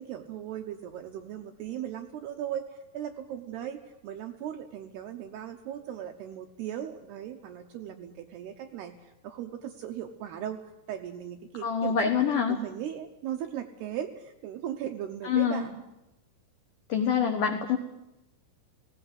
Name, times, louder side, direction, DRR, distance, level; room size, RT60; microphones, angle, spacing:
voice 1, 0.0-10.6 10.9-15.8, right 10 dB, 80° right, 5 dB, 2.4 m, -38 dB
voice 2, 11.6-12.6 15.2-15.6 16.9-17.8, left 7 dB, 90° left, 6 dB, 1.8 m, -25 dB
18.5 x 17.0 x 9.5 m, 0.94 s
omnidirectional pair, 5.8 m